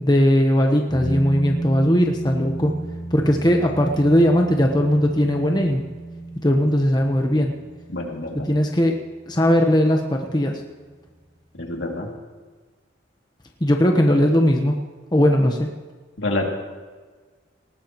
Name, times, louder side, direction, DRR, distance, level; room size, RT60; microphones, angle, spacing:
voice 1, 0.0-2.7 3.1-5.8 6.4-7.5 8.5-8.9 9.3-10.6 13.6-14.8 15.1-15.7, equal, 20° left, 2 dB, 1.1 m, -18 dB
sound 1, 0.9-10.0 10.3-10.4, right 2 dB, 25° right, 3.5 m, -32 dB
voice 2, 7.9-8.5 11.5-12.1 16.2-16.5, left 2 dB, 70° left, 0 dB, 2.6 m, -27 dB
19.5 x 18.5 x 3.1 m, 1.4 s
head